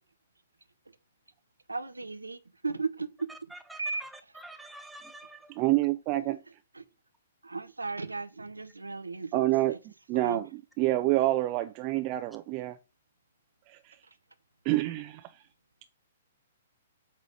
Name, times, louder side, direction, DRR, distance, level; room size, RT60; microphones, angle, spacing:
voice 1, 1.7-3.1 3.8-4.0 6.7-6.8 7.5-9.4 9.7-9.8 10.1-10.4, right 3 dB, 85° right, 0.7 m, -35 dB
voice 2, 3.5-5.5, right 2 dB, 5° right, 0.8 m, -47 dB
voice 3, 5.6-6.4 9.3-9.8 10.1-10.5 10.8-12.8 13.7-14.0 14.6-15.3, right 17 dB, 35° right, 0.5 m, -27 dB
8.3 x 3.1 x 5.1 m
figure-of-eight pair, 115°, 0 cm